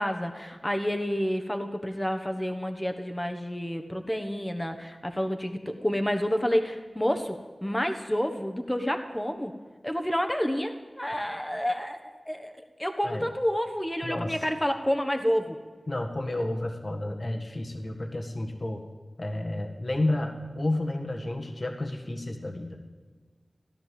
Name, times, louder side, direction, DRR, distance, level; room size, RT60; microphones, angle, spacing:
voice 1, 0.0-9.5 9.8-15.6, equal, 15° left, 6 dB, 1.3 m, -29 dB
voice 2, 14.0-14.3 15.9-18.8 19.2-22.8, left 1 dB, 50° left, 3 dB, 1.8 m, -31 dB
16.5 x 10.5 x 7.8 m, 1.4 s
cardioid pair, 40°, 0 cm